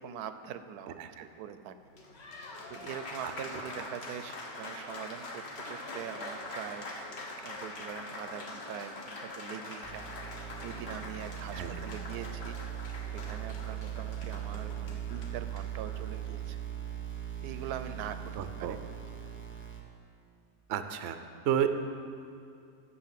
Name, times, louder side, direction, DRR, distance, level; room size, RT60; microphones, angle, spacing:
voice 1, 0.0-1.0 1.4-1.7 2.7-5.4 5.7-6.9 7.4-10.1 10.6-12.6 13.1-16.6 17.4-18.3 18.6-18.9, right 9 dB, 80° right, 11 dB, 1.1 m, -43 dB
voice 2, 1.0-1.3 3.2-3.3 11.5-11.7 18.4-18.8 20.7-21.2 21.4-21.8, right 9 dB, 60° right, 9 dB, 0.7 m, -31 dB
Applause, 1.8-16.5, left 2 dB, 45° left, 1.3 m, -44 dB
sound 1, 9.8-19.8, right 10 dB, 10° left, 1.0 m, -39 dB
11.5 x 6.6 x 7.4 m, 2.4 s
omnidirectional pair, 1.6 m